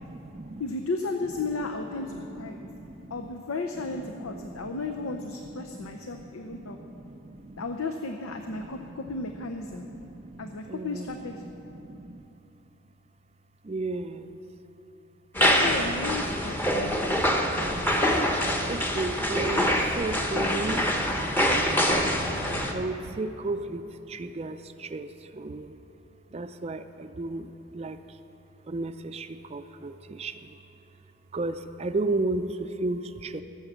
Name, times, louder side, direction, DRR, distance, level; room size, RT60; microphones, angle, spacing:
voice 1, 0.0-0.6 2.2-3.1 4.2-4.8 5.6-7.6 8.6-9.1 9.9-11.1 11.7-12.2 13.6-14.4 16.3-17.8 18.7-20.9 21.5-22.2 22.7-25.8 26.3-28.0 28.7-30.5 31.3-33.4, right 2 dB, 30° right, 10 dB, 0.4 m, -35 dB
voice 2, 0.6-2.6 3.1-6.8 7.6-9.9 10.4-11.5 15.4-17.1, left 3 dB, 90° left, 5 dB, 0.7 m, -34 dB
sound 1, 15.3-22.7, equal, 10° left, 0.8 m, -25 dB
17.5 x 7.2 x 7.4 m, 3.0 s
head